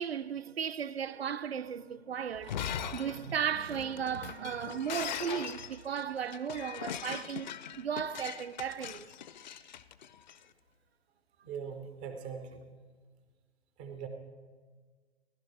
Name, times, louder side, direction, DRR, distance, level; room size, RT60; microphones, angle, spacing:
voice 1, 0.0-9.1, right 8 dB, 75° right, 0.5 m, -35 dB
Shatter, 2.3-10.4, left 9 dB, 45° left, 0.5 m, -41 dB
voice 2, 11.5-12.6 13.8-14.1, right 6 dB, 10° right, 0.3 m, -41 dB
16.0 x 10.5 x 4.4 m
figure-of-eight pair, 120°, 32 cm